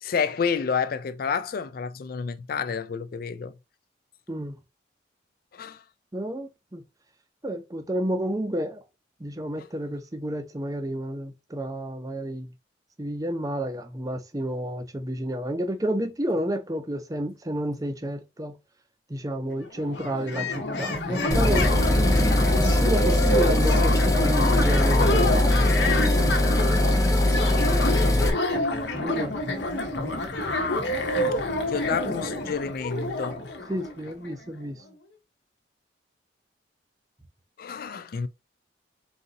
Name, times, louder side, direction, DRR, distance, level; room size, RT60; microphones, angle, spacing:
voice 1, 0.0-3.5 5.5-5.8 9.6-9.7 27.8-28.3 30.3-30.7 31.4-33.5 37.6-38.3, left 6 dB, 50° left, 0.4 m, -30 dB
voice 2, 6.1-6.8 7.4-8.8 9.2-12.5 13.0-18.5 19.1-26.0 28.9-29.3 32.1-32.2 33.7-34.8, right 1 dB, 20° right, 0.6 m, -31 dB
sound 1, 19.5-19.6 19.7-34.4, left 1 dB, 65° left, 1.0 m, -28 dB
sound 2, 21.3-28.3, left 1 dB, 20° left, 0.6 m, -21 dB
4.0 x 2.8 x 3.9 m
head